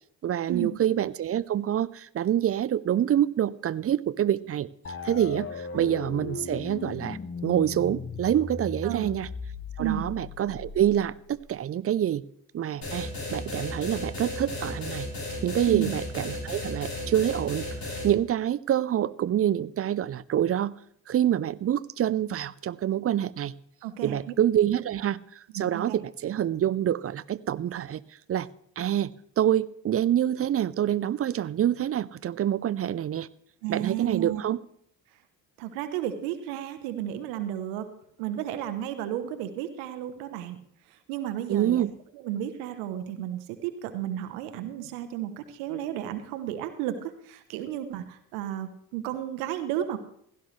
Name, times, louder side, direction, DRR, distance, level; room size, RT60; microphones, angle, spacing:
voice 1, 0.2-4.7 5.0-9.3 9.8-12.2 12.5-15.1 15.4-20.7 21.1-23.5 24.0-28.0 28.3-28.5 28.8-33.3 33.7-34.6 41.5-41.9, right 10 dB, 30° right, 20 dB, 0.5 m, -26 dB
sound 1, 4.8-11.5, left 5 dB, 25° left, 0.9 m, -38 dB
sound 2, 12.8-18.1, left 2 dB, 45° left, 5.1 m, -34 dB
voice 2, 23.8-24.3 25.5-26.0 33.6-34.4 35.6-37.9 38.2-40.6 41.1-41.9 42.1-50.0, right 11 dB, 75° right, 10 dB, 1.0 m, -33 dB
16.0 x 11.5 x 3.2 m, 0.67 s
hypercardioid pair, 50°, 47 cm